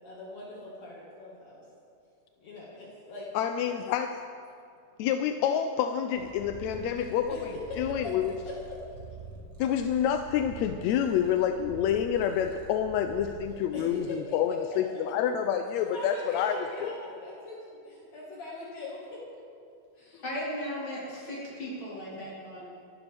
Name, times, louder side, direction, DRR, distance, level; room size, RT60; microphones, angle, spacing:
voice 1, 0.0-1.6 2.4-3.3 6.7-7.0 7.3-8.1 8.5-8.6 13.7-14.6 15.9-17.6 17.8-19.2 20.0-20.5, left 2 dB, 60° left, -6 dB, 3.0 m, -41 dB
voice 2, 3.3-4.2 5.0-7.5 7.8-8.3 9.6-16.9, left 9 dB, 80° left, 6 dB, 1.7 m, -28 dB
Purr, 6.2-14.2, right 2 dB, 30° right, 1.9 m, -46 dB
voice 3, 20.2-22.7, equal, 40° left, -7 dB, 4.9 m, -36 dB
25.5 x 11.5 x 3.5 m, 2.4 s
omnidirectional pair, 3.5 m